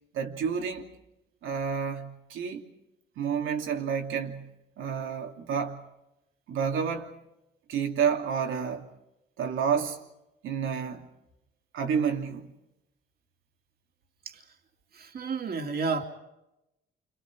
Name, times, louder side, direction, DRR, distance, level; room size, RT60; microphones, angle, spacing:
voice 1, 0.1-0.9 1.4-2.7 3.2-5.9 6.5-7.1 7.7-8.9 9.4-10.0 10.4-11.1 11.7-12.5, right 7 dB, 80° right, 2.9 m, -30 dB
voice 2, 14.9-16.0, right 4 dB, 50° right, 2.8 m, -31 dB
29.5 x 27.0 x 4.8 m
cardioid pair, 90°, 20 cm